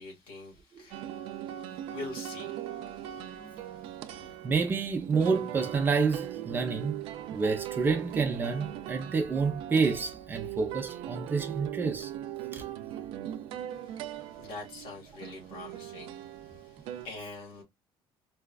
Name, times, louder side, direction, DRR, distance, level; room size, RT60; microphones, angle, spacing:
voice 1, 0.0-4.2 13.7-17.6, left 3 dB, 60° left, 1.9 m, -46 dB
sound 1, 0.9-17.1, right 11 dB, 70° right, 0.5 m, -40 dB
voice 2, 4.4-7.0 7.3-12.1 12.5-12.6, right 4 dB, 20° right, 0.6 m, -28 dB
4.7 x 2.3 x 2.3 m
cardioid pair, 175°, 9 cm